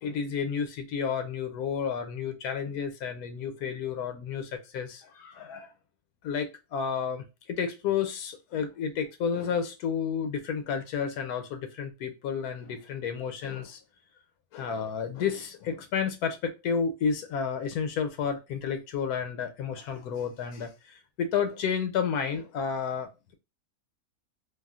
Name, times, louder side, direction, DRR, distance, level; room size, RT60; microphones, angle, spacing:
voice 1, 0.0-5.7 6.2-13.8 14.5-23.3, left 6 dB, 90° left, 1.1 m, -31 dB
3.4 x 2.3 x 2.4 m
omnidirectional pair, 1.6 m